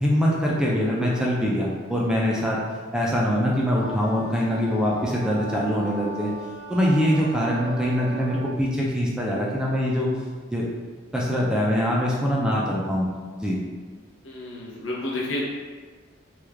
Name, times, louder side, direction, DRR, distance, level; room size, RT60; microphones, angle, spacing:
voice 1, 0.0-2.6 2.9-6.3 6.7-10.1 10.5-10.6 11.1-13.6, equal, 5° right, -4 dB, 0.3 m, -23 dB
Wind instrument woodwind instrument, 3.8-8.6, right 3 dB, 80° right, 0.6 m, -38 dB
voice 2, 14.2-15.4, left 1 dB, 75° left, -4 dB, 0.8 m, -30 dB
3.1 x 2.3 x 3.3 m, 1.4 s
head